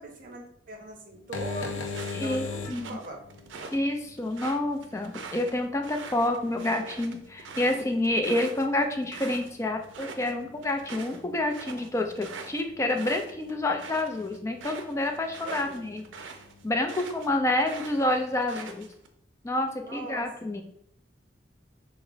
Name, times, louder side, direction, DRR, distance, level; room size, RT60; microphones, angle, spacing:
voice 1, 0.0-3.2 15.4-15.9 19.8-20.6, right 2 dB, 45° right, 2 dB, 0.7 m, -41 dB
sound 1, 1.1-18.4, left 4 dB, 90° left, 0.4 m, -44 dB
sound 2, 1.9-3.8 4.2-9.5 9.8-10.3 10.6-17.3 17.6-19.1, right 4 dB, 90° right, 0.5 m, -43 dB
voice 2, 2.1-3.0 3.7-16.0 16.6-18.9 19.4-20.6, left 1 dB, 15° left, 5 dB, 0.3 m, -28 dB
4.9 x 2.0 x 2.4 m, 0.70 s
head